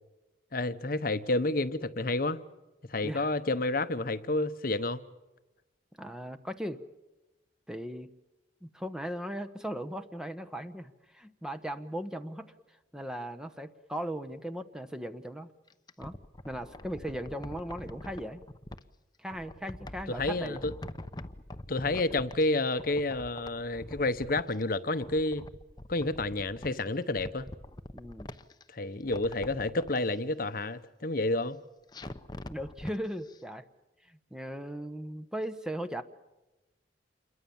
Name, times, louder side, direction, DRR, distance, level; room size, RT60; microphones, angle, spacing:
voice 1, 0.5-2.4 2.9-5.0 20.1-20.7 21.7-25.4 25.9-27.5 28.7-31.6, left 2 dB, 50° left, 1.0 m, -30 dB
voice 2, 6.0-6.8 7.7-8.1 8.6-12.5 12.9-15.5 16.0-16.1 16.4-18.4 19.2-20.6 21.9-22.0 27.9-28.3 32.5-33.6 34.0-36.0, equal, 5° right, 1.0 m, -38 dB
sound 1, 15.7-18.8 19.3-22.5 22.8-24.6 24.9-26.8 27.1-28.6 29.0-30.0 31.9-33.0 33.3-33.4, left 1 dB, 25° left, 0.8 m, -44 dB
28.0 x 22.5 x 7.2 m
head